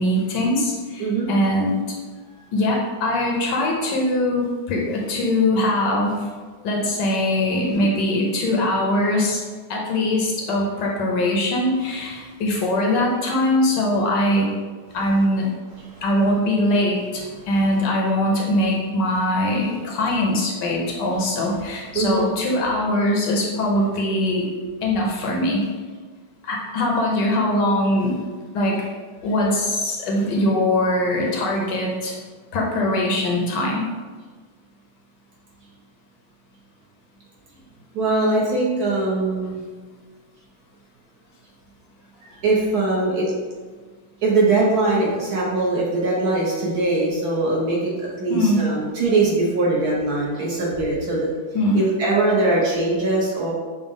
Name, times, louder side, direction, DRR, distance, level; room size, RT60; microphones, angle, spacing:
voice 1, 0.0-1.7 2.5-6.3 6.6-9.4 9.7-14.5 14.9-15.5 16.0-24.5 24.8-25.6 26.4-28.3 28.5-28.9 29.2-32.2 32.5-33.9 48.3-48.6 51.5-51.8, left 1 dB, 70° left, -2 dB, 1.2 m, -22 dB
voice 2, 1.0-1.3 15.9-16.0 21.9-22.2 37.9-39.6 42.3-43.3 44.2-51.3 51.7-53.5, right 2 dB, 65° right, -4 dB, 1.1 m, -21 dB
6.2 x 2.1 x 3.4 m, 1.4 s
omnidirectional pair, 2.2 m